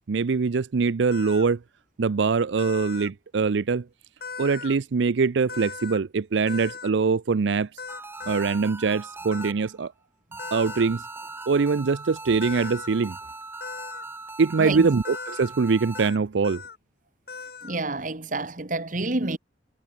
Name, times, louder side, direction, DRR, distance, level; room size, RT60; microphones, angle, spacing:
voice 1, 0.1-1.6 2.0-3.8 4.4-7.7 8.3-9.9 10.5-11.0 11.5-13.2 14.4-16.6, right 4 dB, 80° right, 0.5 m, -23 dB
sound 1, 1.1-1.5 2.6-3.1 4.2-4.8 5.5-6.0 6.5-6.9 7.8-8.6 9.3-9.5 10.4-10.9 12.4-12.9 13.6-14.0 15.0-15.5 15.9-16.2 16.4-16.8 17.3-17.8, left 5 dB, 55° left, 2.8 m, -38 dB
sound 2, 7.9-9.9 10.3-16.1, right 3 dB, 10° right, 0.8 m, -40 dB
voice 2, 14.6-14.9 17.6-19.4, right 2 dB, 45° right, 1.8 m, -28 dB
head